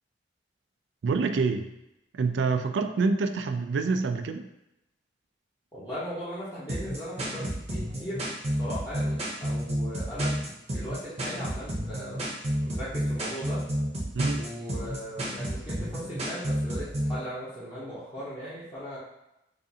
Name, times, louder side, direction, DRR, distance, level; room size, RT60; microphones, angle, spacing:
voice 1, 1.0-1.7 2.1-4.5 14.1-14.5, right 4 dB, 85° right, 8 dB, 0.4 m, -27 dB
voice 2, 5.7-8.2 8.6-12.2 12.6-13.6 14.3-19.0, equal, 25° left, -12 dB, 0.9 m, -38 dB
sound 1, 6.7-17.2, equal, 35° right, 0.7 m, -30 dB
4.9 x 2.5 x 2.8 m, 0.87 s
head